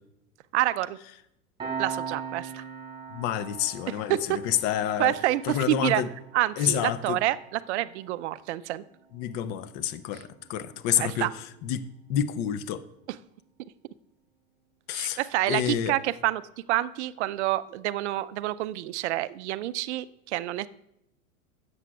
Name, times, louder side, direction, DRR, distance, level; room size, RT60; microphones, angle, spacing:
voice 1, 0.5-1.0 1.8-2.6 3.9-4.4 5.0-6.0 6.3-8.8 11.0-11.3 13.1-13.2 14.9-16.4 16.7-20.7, right 15 dB, 55° right, 17 dB, 0.5 m, -28 dB
Piano, 1.6-12.7, right 6 dB, 10° right, 3.3 m, -42 dB
voice 2, 3.1-5.1 5.5-6.1 6.6-7.2 9.1-10.2 10.5-11.3 11.6-11.8 12.1-12.8 14.9-15.2 15.5-15.9, left 10 dB, 25° left, 14 dB, 0.3 m, -28 dB
16.0 x 7.6 x 2.3 m, 0.82 s
figure-of-eight pair, 90°, 42 cm